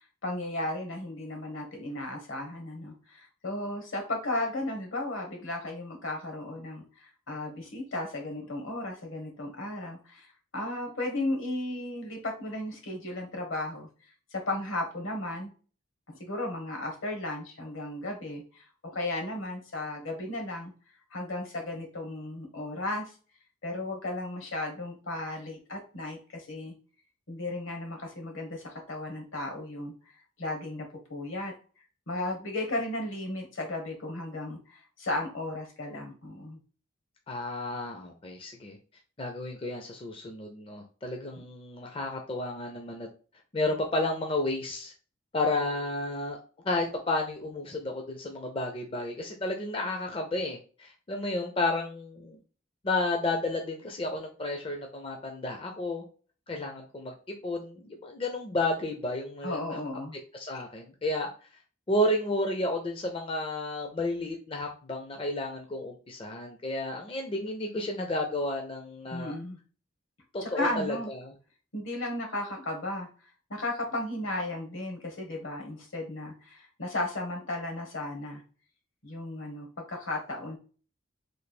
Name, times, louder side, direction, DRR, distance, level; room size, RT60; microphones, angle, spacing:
voice 1, 0.0-13.9 14.3-15.5 16.1-18.7 18.9-20.7 21.1-23.1 23.6-26.7 27.3-29.9 30.4-31.5 32.1-36.6 59.4-60.2 69.1-69.6 70.4-71.1 71.7-73.1 73.5-78.4 79.0-80.6, left 2 dB, 75° left, 2 dB, 1.2 m, -35 dB
voice 2, 37.3-38.8 39.2-43.1 43.5-44.9 45.3-46.4 46.6-52.4 52.8-56.0 56.5-59.6 60.3-61.3 61.9-69.3 70.3-71.3, left 2 dB, 25° left, 2 dB, 0.4 m, -32 dB
3.2 x 2.4 x 4.1 m, 0.38 s
head